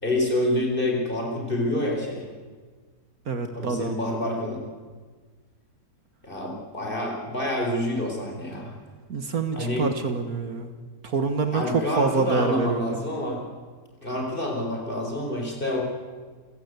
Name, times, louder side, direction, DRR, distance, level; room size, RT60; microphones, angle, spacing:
voice 1, 0.0-2.3 3.5-4.6 6.2-8.7 9.5-9.9 11.5-13.5 14.0-15.9, left 1 dB, 30° left, 0 dB, 4.7 m, -27 dB
voice 2, 3.3-3.9 9.1-10.7 11.0-13.0, right 4 dB, 65° right, 8 dB, 2.1 m, -26 dB
27.5 x 16.0 x 8.2 m, 1.5 s
omnidirectional pair, 1.7 m